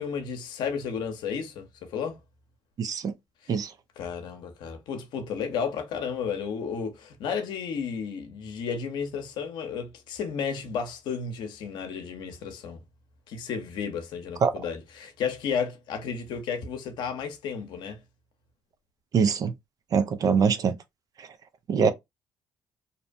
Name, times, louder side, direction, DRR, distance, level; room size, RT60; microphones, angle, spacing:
voice 1, 0.0-2.2 3.4-3.6 4.0-12.8 13.3-18.0, left 6 dB, 75° left, 0.8 m, -33 dB
voice 2, 2.8-3.1 3.5-3.7 14.4-14.5 19.1-19.5 19.9-20.8 21.7-21.9, right 6 dB, 50° right, 0.6 m, -23 dB
2.8 x 2.1 x 2.5 m
supercardioid pair, 80°, 8 cm